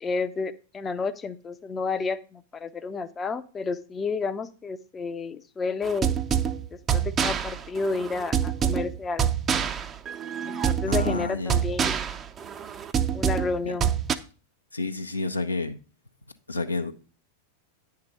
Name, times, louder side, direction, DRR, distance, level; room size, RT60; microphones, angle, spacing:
voice 1, 0.0-6.1 6.7-9.3 10.5-12.1 13.1-13.9, left 4 dB, 20° left, 0.5 m, -31 dB
sound 1, 5.8-14.2, right 8 dB, 25° right, 0.5 m, -26 dB
voice 2, 10.8-11.6 13.6-13.7 14.7-15.8 16.5-16.9, left 3 dB, 80° left, 0.6 m, -30 dB
9.5 x 4.8 x 5.4 m
figure-of-eight pair, 90°, 0 cm